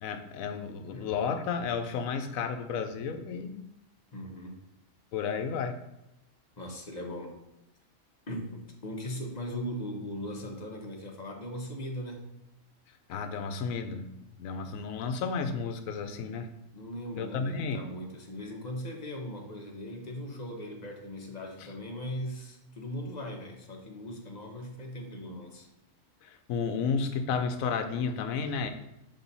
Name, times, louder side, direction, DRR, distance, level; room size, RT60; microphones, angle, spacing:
voice 1, 0.0-3.6 5.1-5.8 13.1-16.5 17.2-17.8 26.2-28.7, left 5 dB, 85° left, 8 dB, 1.1 m, -32 dB
voice 2, 4.1-4.6 6.6-7.3 8.3-12.2 14.6-14.8 16.7-25.7, equal, 35° left, 2 dB, 0.9 m, -39 dB
7.0 x 3.6 x 4.0 m, 0.91 s
omnidirectional pair, 1.4 m